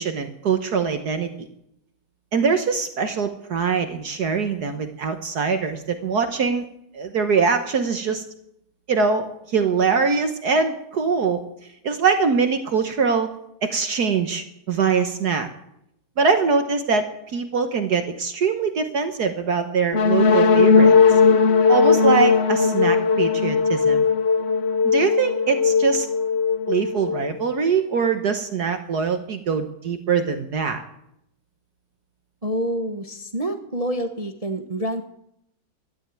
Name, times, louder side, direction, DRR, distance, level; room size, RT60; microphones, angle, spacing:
voice 1, 0.0-1.5 2.3-6.6 6.9-8.2 8.9-11.4 11.8-13.4 13.6-15.5 16.2-21.2 21.7-24.1 24.8-26.1 26.7-30.8, right 5 dB, 55° right, 8 dB, 1.5 m, -23 dB
sound 1, 19.9-27.6, left 5 dB, 50° left, 0.8 m, -18 dB
voice 2, 32.4-35.0, right 1 dB, 30° right, 6 dB, 0.7 m, -27 dB
13.5 x 12.0 x 9.0 m, 0.78 s
omnidirectional pair, 2.2 m